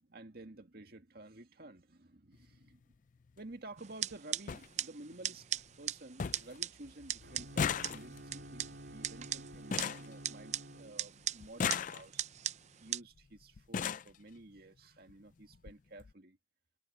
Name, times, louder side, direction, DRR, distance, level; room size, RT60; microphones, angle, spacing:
voice 1, 0.0-3.0 3.4-12.2 12.8-16.4, right 2 dB, 60° right, 2.0 m, -52 dB
sound 1, 2.3-2.5 3.8-3.9 4.1-4.2 4.5-4.7 5.1-5.6 5.9-6.0 6.2-6.6 6.8-10.8 11.4-12.4 13.2-13.3 13.6-14.2 15.1-15.2 15.5-15.7 16.0-16.1, left 7 dB, 50° left, 0.4 m, -38 dB
sound 2, 3.8-13.0, right 11 dB, 40° right, 0.5 m, -41 dB
Bowed string instrument, 7.2-11.4, right 1 dB, 85° right, 4.4 m, -51 dB
head